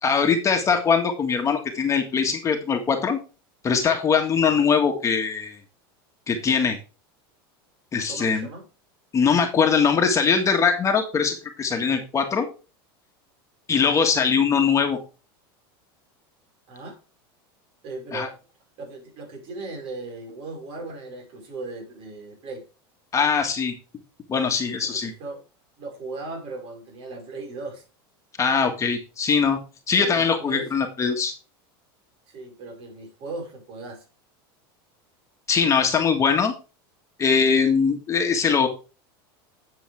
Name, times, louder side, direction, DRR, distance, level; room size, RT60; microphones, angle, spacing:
voice 1, 0.0-3.2 3.6-5.6 6.3-6.8 7.9-8.5 9.1-12.4 13.7-15.0 18.1-18.3 23.1-23.7 24.3-25.1 28.4-29.6 29.9-31.3 35.5-36.5 37.2-38.7, left 6 dB, 25° left, 3 dB, 1.8 m, -21 dB
voice 2, 8.1-8.7 16.7-17.0 17.8-18.4 18.8-22.6 24.8-25.4 25.8-27.8 29.9-30.7 32.3-34.0 37.8-37.9, right 3 dB, 50° right, 3 dB, 5.4 m, -37 dB
10.0 x 7.5 x 3.5 m, 0.32 s
supercardioid pair, 125°, 13 cm